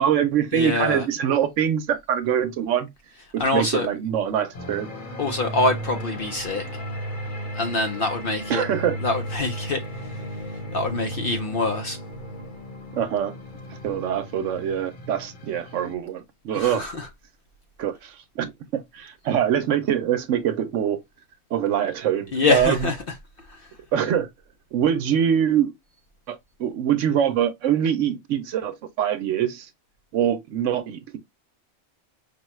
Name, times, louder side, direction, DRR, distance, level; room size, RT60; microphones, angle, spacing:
voice 1, 0.0-2.9 3.3-4.9 8.5-9.0 12.9-13.3 13.8-16.9 17.8-21.0 21.5-22.9 23.9-24.3 24.7-25.7 26.3-29.7 30.1-31.2, right 9 dB, 70° right, 0.9 m, -24 dB
voice 2, 0.5-1.1 3.4-3.9 5.2-6.6 7.6-8.6 9.0-9.8 10.7-12.0 16.5-17.1 22.3-23.0 23.5-23.6, left 3 dB, 55° left, 0.6 m, -24 dB
sound 1, 4.5-15.9, right 1 dB, 40° left, 1.0 m, -35 dB
5.3 x 2.3 x 3.0 m
omnidirectional pair, 1.4 m